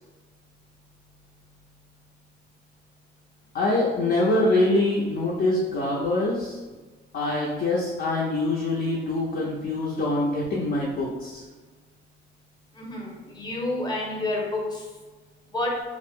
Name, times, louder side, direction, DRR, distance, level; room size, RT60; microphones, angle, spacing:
voice 1, 3.5-6.6 7.1-11.4, left 2 dB, 50° left, -4 dB, 0.6 m, -24 dB
voice 2, 12.8-14.8 15.5-15.7, left 2 dB, 20° left, -2 dB, 0.8 m, -29 dB
2.4 x 2.0 x 3.5 m, 1.3 s
cardioid pair, 90°, 20 cm